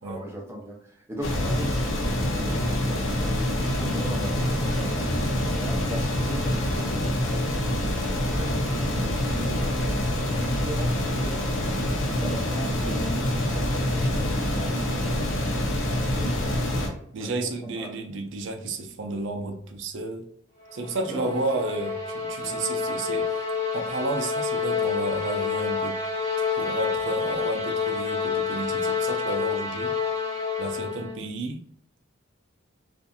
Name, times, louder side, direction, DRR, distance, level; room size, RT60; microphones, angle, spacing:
voice 1, 0.0-2.7 3.2-7.2 8.1-10.0 10.3-11.4 12.1-13.3 13.9-14.9 17.2-17.9 21.1-21.3 22.4-22.6, equal, 15° right, 0.7 m, -39 dB
sound 1, 1.2-16.9, left 1 dB, 65° left, 0.7 m, -26 dB
voice 2, 17.1-20.3 20.7-23.4 23.7-26.0 26.4-29.9 30.6-31.6, right 2 dB, 65° right, 0.5 m, -32 dB
sound 2, 20.7-31.2, left 5 dB, 40° left, 1.2 m, -28 dB
2.7 x 2.5 x 2.3 m
head